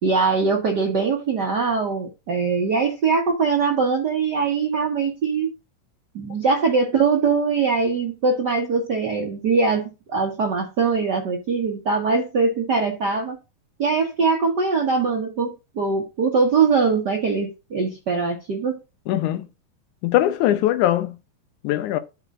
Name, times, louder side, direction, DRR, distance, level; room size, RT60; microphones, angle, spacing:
voice 1, 0.0-5.5 6.1-13.4 13.8-18.7, right 4 dB, 90° right, 0.9 m, -22 dB
voice 2, 19.1-19.5 20.0-21.2 21.6-22.0, left 13 dB, 70° left, 2.1 m, -21 dB
12.5 x 5.3 x 2.5 m
omnidirectional pair, 3.9 m